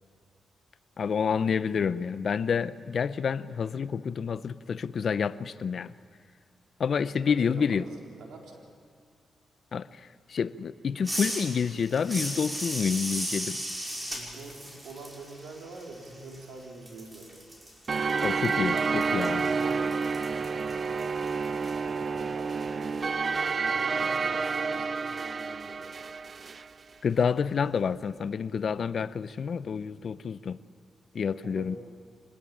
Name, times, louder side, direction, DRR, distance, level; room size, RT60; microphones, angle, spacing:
voice 1, 1.0-5.9 6.8-7.8 9.7-13.6 18.2-19.5 27.0-30.6 31.1-31.8, left 6 dB, 60° left, 0.7 m, -28 dB
voice 2, 7.2-8.6 14.0-17.3 18.7-21.1 21.6-23.1 23.5-25.9 31.4-31.8, right 3 dB, 90° right, 4.1 m, -45 dB
sound 1, 11.0-16.6 16.9-21.7, equal, 20° right, 5.3 m, -37 dB
sound 2, 17.9-26.7, right 5 dB, 45° right, 0.5 m, -29 dB
25.0 x 20.0 x 8.7 m
cardioid pair, 90°, 0 cm